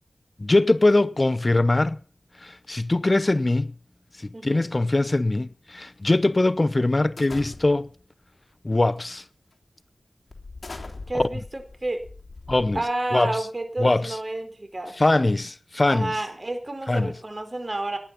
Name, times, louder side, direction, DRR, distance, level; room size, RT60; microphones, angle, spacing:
voice 1, 0.4-2.0 2.4-3.7 4.2-7.9 8.6-9.2 12.5-12.8 13.1-13.3 13.8-14.2 15.0-16.1 16.9-17.1, left 2 dB, 40° left, 0.7 m, -22 dB
voice 2, 4.3-4.7 11.1-12.1 12.7-15.0 15.9-18.0, right 2 dB, 40° right, 4.4 m, -30 dB
sound 1, 7.2-8.0 8.8-9.1 9.5-9.6 10.3-13.2, left 3 dB, 60° left, 3.5 m, -41 dB
18.5 x 11.0 x 5.9 m
cardioid pair, 45°, 0 cm